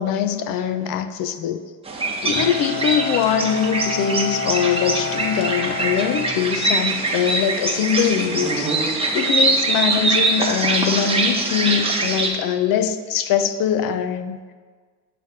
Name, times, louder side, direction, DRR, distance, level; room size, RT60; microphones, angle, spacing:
voice 1, 0.0-1.6 2.2-8.7 9.1-14.4, left 8 dB, 55° left, 10 dB, 0.5 m, -22 dB
sound 1, 1.9-12.3, right 3 dB, 15° right, 0.9 m, -23 dB
Bowed string instrument, 2.3-7.2, left 5 dB, 35° left, 1.0 m, -30 dB
7.9 x 3.2 x 5.7 m, 1.5 s
cardioid pair, 110°, 42 cm